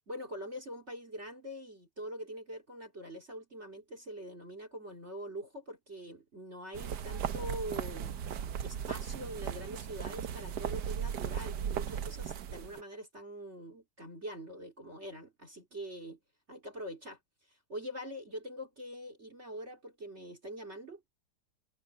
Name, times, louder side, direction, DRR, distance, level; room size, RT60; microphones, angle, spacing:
voice 1, 0.1-8.1 8.6-16.2 16.5-17.2 17.5-21.0, equal, 30° right, 3.4 m, -44 dB
sound 1, 6.8-12.8, right 8 dB, 60° right, 1.3 m, -37 dB
omnidirectional pair, 2.3 m